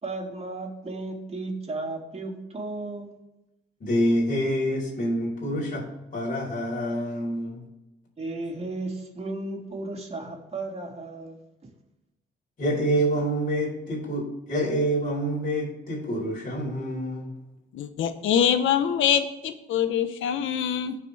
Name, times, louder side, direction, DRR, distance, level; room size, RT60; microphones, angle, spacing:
voice 1, 0.0-3.1 8.2-11.4, right 2 dB, 30° right, -1 dB, 3.2 m, -34 dB
voice 2, 3.8-5.8 6.1-7.6 12.6-17.3, equal, 45° left, -3 dB, 4.3 m, -27 dB
voice 3, 17.7-21.0, left 9 dB, 80° left, 10 dB, 1.0 m, -24 dB
18.0 x 6.0 x 3.4 m, 0.97 s
cardioid pair, 90°, 20 cm